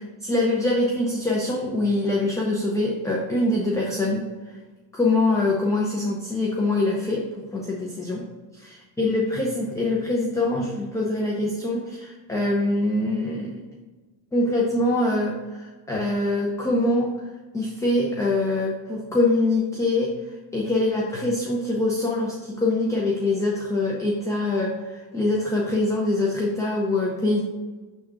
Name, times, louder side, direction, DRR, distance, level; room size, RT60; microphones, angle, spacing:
voice 1, 0.2-4.3 4.9-8.2 8.6-13.6 14.3-17.1 17.5-20.1 20.5-27.4, left 2 dB, 5° left, -3 dB, 0.5 m, -24 dB
6.6 x 3.7 x 4.7 m, 1.3 s
cardioid pair, 150°, 50 cm